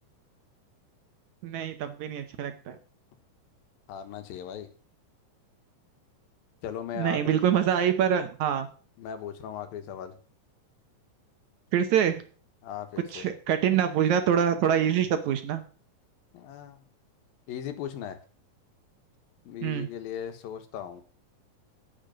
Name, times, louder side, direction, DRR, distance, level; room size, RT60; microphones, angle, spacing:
voice 1, 1.4-2.8 6.9-8.7 11.7-12.2 13.1-15.6 19.6-19.9, right 9 dB, 70° right, 8 dB, 1.9 m, -25 dB
voice 2, 3.9-4.7 6.6-7.4 9.0-10.2 12.6-13.3 16.3-16.8 17.5-18.2 19.4-21.0, left 9 dB, 85° left, 9 dB, 3.1 m, -37 dB
10.5 x 6.5 x 9.0 m, 0.41 s
omnidirectional pair, 4.1 m